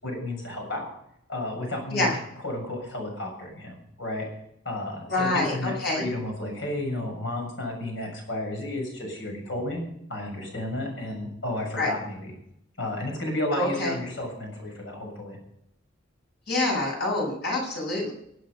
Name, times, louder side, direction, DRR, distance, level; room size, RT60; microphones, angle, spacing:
voice 1, 0.0-0.9 1.3-4.2 4.7-9.8 10.1-12.3 12.8-15.4, left 1 dB, 70° left, 1 dB, 6.9 m, -32 dB
voice 2, 5.1-6.0 11.8-11.9 13.5-13.9 16.5-18.1, left 2 dB, 55° left, -1 dB, 7.4 m, -26 dB
24.0 x 8.7 x 5.5 m, 0.76 s
head